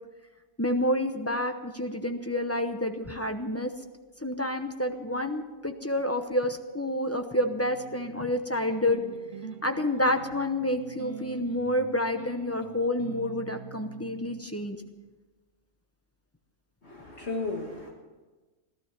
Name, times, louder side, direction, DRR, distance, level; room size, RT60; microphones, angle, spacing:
voice 1, 0.6-3.7 4.2-9.0 9.6-14.8, left 1 dB, 15° left, 6 dB, 0.8 m, -29 dB
sound 1, 7.4-14.4, right 5 dB, 90° right, 1.6 m, -45 dB
voice 2, 16.8-17.9, left 3 dB, 55° left, -2 dB, 2.2 m, -34 dB
17.5 x 12.5 x 6.0 m, 1.2 s
omnidirectional pair, 1.3 m